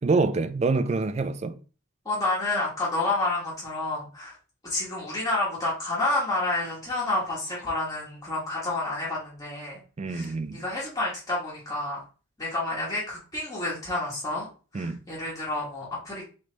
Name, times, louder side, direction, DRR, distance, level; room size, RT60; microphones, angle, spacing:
voice 1, 0.0-1.5 10.0-10.6 14.7-15.0, right 3 dB, 30° right, 0.3 m, -26 dB
voice 2, 2.0-4.3 4.6-9.8 10.1-12.0 12.4-14.5 14.7-16.2, left 2 dB, 15° left, 1.4 m, -29 dB
3.3 x 3.1 x 3.9 m
head